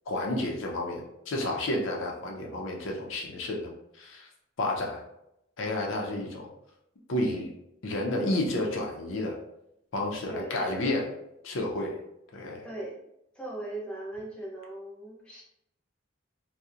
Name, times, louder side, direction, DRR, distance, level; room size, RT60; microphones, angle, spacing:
voice 1, 0.1-3.7 4.0-4.3 4.6-5.0 5.6-6.5 7.1-7.5 7.8-9.4 9.9-11.1 11.4-12.0 12.3-12.6, left 1 dB, 75° left, 0 dB, 0.5 m, -31 dB
voice 2, 10.2-10.9 12.6-13.0 13.3-15.4, right 2 dB, 5° left, -5 dB, 0.5 m, -39 dB
2.7 x 2.0 x 2.4 m, 0.80 s
head